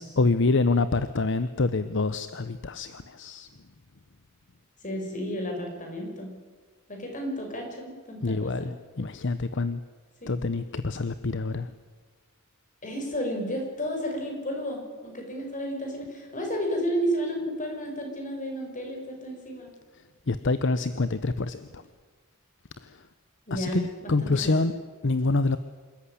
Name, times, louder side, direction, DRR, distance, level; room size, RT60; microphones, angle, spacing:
voice 1, 0.0-3.5 8.2-9.8 10.3-11.7 20.3-21.8 22.8-23.0 23.5-24.7 25.0-25.6, left 3 dB, 60° left, 13 dB, 0.8 m, -26 dB
voice 2, 4.8-6.3 6.9-8.7 10.2-10.4 12.8-19.7 23.5-24.7, equal, 40° left, 2 dB, 5.9 m, -32 dB
27.5 x 14.0 x 10.0 m, 1.4 s
head